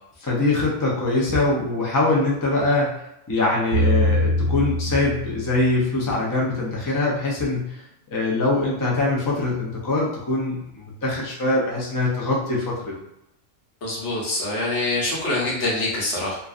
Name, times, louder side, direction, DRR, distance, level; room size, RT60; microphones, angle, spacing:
voice 1, 0.2-7.8 8.1-13.0, left 2 dB, 30° left, -4 dB, 0.4 m, -23 dB
sound 1, 3.7-6.1, equal, 75° right, 0.9 m, -23 dB
voice 2, 13.8-16.4, left 2 dB, 70° left, -5 dB, 1.2 m, -25 dB
2.5 x 2.3 x 2.4 m, 0.84 s
omnidirectional pair, 1.2 m